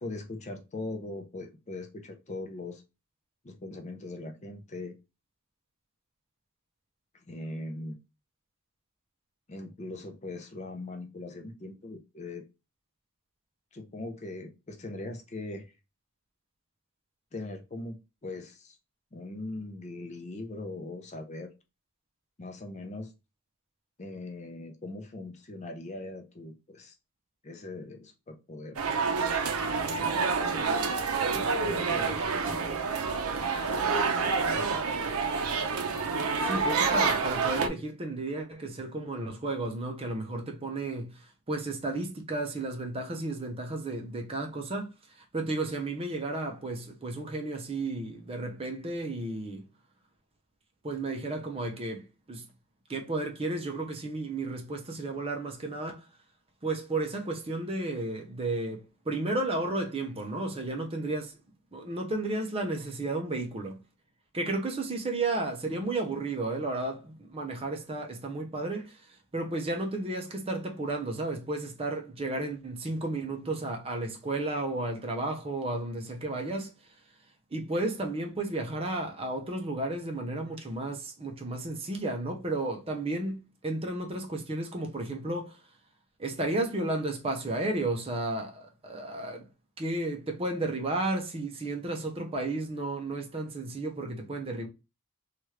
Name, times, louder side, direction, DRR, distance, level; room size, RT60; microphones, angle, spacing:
voice 1, 0.0-2.8 3.4-5.0 7.3-8.0 9.5-12.4 13.7-15.7 17.3-18.8 19.1-21.5 22.4-23.1 24.0-27.0 27.4-28.8 30.0-30.9 31.3-32.7 33.5-35.0, left 2 dB, 30° left, 0.5 m, -40 dB
sound 1, 28.8-37.7, right 5 dB, 75° right, 0.5 m, -28 dB
voice 2, 36.4-49.6 50.8-52.5 52.9-56.0 56.6-61.4 61.7-63.8 64.3-76.7 77.5-85.6 86.2-89.5 89.8-94.7, right 2 dB, 25° right, 0.6 m, -33 dB
2.9 x 2.4 x 3.1 m
head